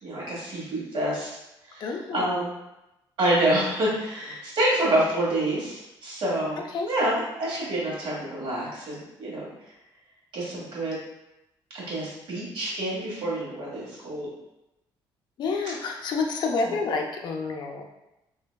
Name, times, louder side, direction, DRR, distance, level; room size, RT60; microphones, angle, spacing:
voice 1, 0.0-1.4 1.7-1.8 2.1-2.5 3.2-6.6 6.9-9.5 10.3-10.9 11.7-14.3 16.6-16.7, right 1 dB, 75° right, -6 dB, 1.4 m, -27 dB
voice 2, 1.8-2.4 6.7-6.9 15.4-17.8, left 4 dB, 55° left, 2 dB, 0.4 m, -29 dB
3.2 x 2.7 x 2.2 m, 0.92 s
cardioid pair, 140°, 9 cm